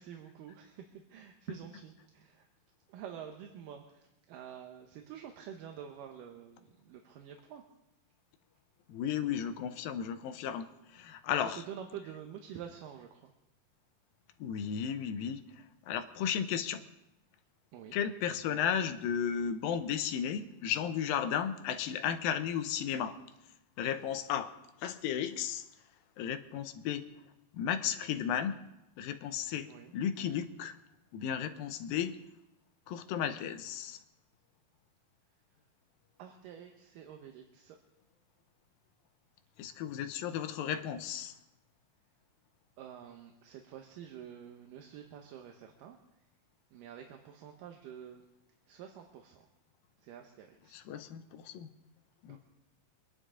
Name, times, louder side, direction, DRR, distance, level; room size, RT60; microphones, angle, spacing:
voice 1, 0.0-2.5 2.9-7.6 11.4-13.3 17.7-18.0 18.3-18.7 29.7-29.9 36.2-37.8 42.8-46.0 46.7-48.2 48.7-49.5 50.0-50.8 52.3-52.4, right 9 dB, 75° right, 4 dB, 2.5 m, -48 dB
voice 2, 8.9-10.7 10.9-11.6 14.4-15.4 15.9-16.8 17.9-23.1 23.8-24.5 24.8-25.6 26.2-27.0 27.5-28.6 29.0-29.7 29.9-30.7 31.1-32.2 32.9-34.0 39.6-41.3 50.7-51.7 52.2-52.4, left 8 dB, 85° left, 10 dB, 2.6 m, -34 dB
24.5 x 11.0 x 3.7 m, 0.87 s
omnidirectional pair, 4.0 m